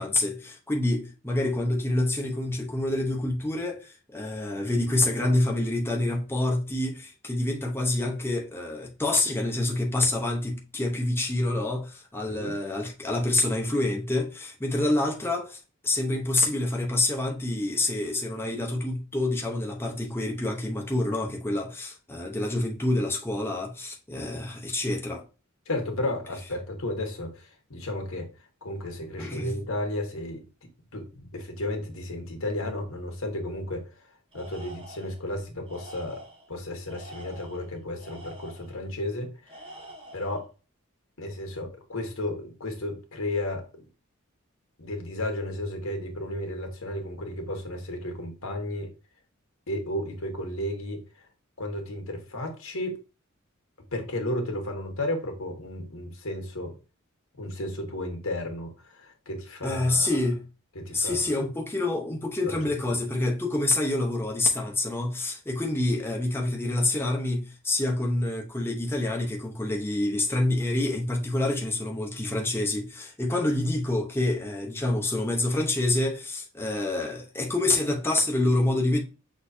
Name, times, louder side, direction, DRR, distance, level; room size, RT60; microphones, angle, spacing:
voice 1, 0.0-25.2 29.2-29.6 59.6-60.4 60.9-79.0, left 2 dB, 10° left, 0.8 m, -27 dB
voice 2, 25.7-28.3 28.6-30.4 30.9-33.9 34.3-36.2 36.5-39.7 40.1-40.5 41.2-43.8 44.8-48.9 49.7-51.3 51.6-53.0 53.9-56.8 57.4-60.1 60.7-61.3 62.4-62.5, left 1 dB, 75° left, 1.4 m, -33 dB
Tools, 34.3-35.2 35.7-36.5 36.9-38.8 39.5-40.4, right 1 dB, 25° right, 1.5 m, -46 dB
6.3 x 3.1 x 2.7 m
head